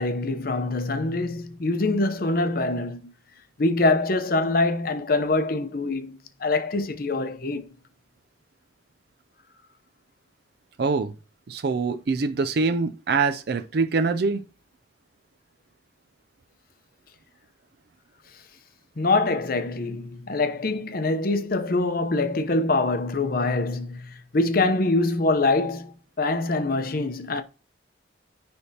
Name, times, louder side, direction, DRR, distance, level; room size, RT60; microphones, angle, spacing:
voice 1, 0.0-3.0 3.6-7.6 19.0-24.0 24.3-25.9 26.2-27.4, left 2 dB, 45° left, 0.7 m, -24 dB
voice 2, 10.8-11.1 11.5-14.4, right 4 dB, 50° right, 0.4 m, -24 dB
10.0 x 3.4 x 2.8 m
head